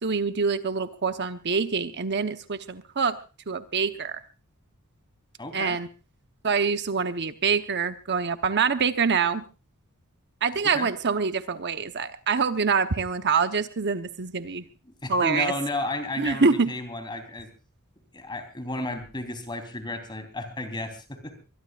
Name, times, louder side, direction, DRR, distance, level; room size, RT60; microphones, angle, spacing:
voice 1, 0.0-3.2 3.5-4.2 5.5-5.9 6.4-9.4 10.4-14.6 15.1-15.5 16.2-16.7, right 5 dB, 55° right, 9 dB, 1.0 m, -25 dB
voice 2, 5.4-5.8 10.6-10.9 14.8-17.5 18.1-21.4, left 2 dB, 20° left, 7 dB, 3.6 m, -33 dB
23.5 x 22.0 x 2.5 m, 0.33 s
head